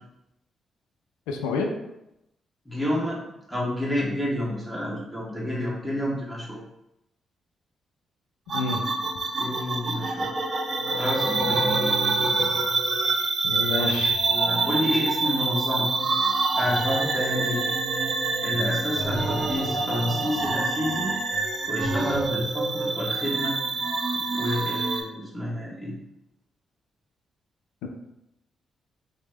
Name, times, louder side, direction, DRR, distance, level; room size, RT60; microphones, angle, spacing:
voice 1, 1.3-1.7 8.5-8.8 13.4-14.1 27.8-27.9, left 3 dB, 85° left, 3 dB, 0.3 m, -28 dB
voice 2, 2.6-3.2 3.5-6.6 9.4-10.3 10.9-11.7 13.8-15.9 16.6-17.8 18.4-21.1 21.7-23.6 24.3-26.0, left 1 dB, 5° left, -6 dB, 1.2 m, -29 dB
sound 1, 8.5-25.0, right 3 dB, 45° right, 0.6 m, -26 dB
3.1 x 2.1 x 3.1 m, 0.87 s
hypercardioid pair, 40°, 0 cm